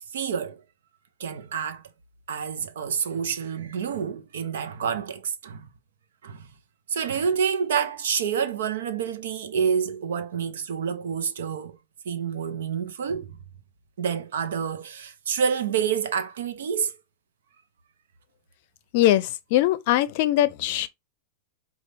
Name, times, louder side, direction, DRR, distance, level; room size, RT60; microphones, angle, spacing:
voice 1, 0.1-0.6 1.2-1.8 2.3-5.7 6.2-6.5 6.9-11.8 12.1-13.4 14.0-16.9, right 7 dB, 85° right, 0.7 m, -28 dB
voice 2, 18.9-20.9, left 14 dB, 50° left, 0.5 m, -21 dB
5.2 x 2.4 x 3.3 m
supercardioid pair, 145°, 0 cm